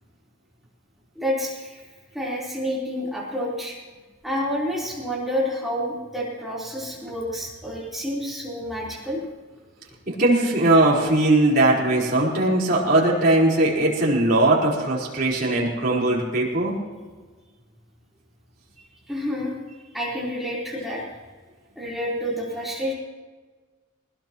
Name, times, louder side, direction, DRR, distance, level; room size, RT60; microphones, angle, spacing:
voice 1, 1.2-1.9 2.1-3.8 4.2-9.2 19.1-19.5 19.9-21.0 21.8-22.9, equal, ahead, -6 dB, 3.9 m, -29 dB
voice 2, 10.1-16.8, right 2 dB, 45° right, -5 dB, 4.4 m, -20 dB
21.5 x 20.5 x 3.1 m, 1.4 s
head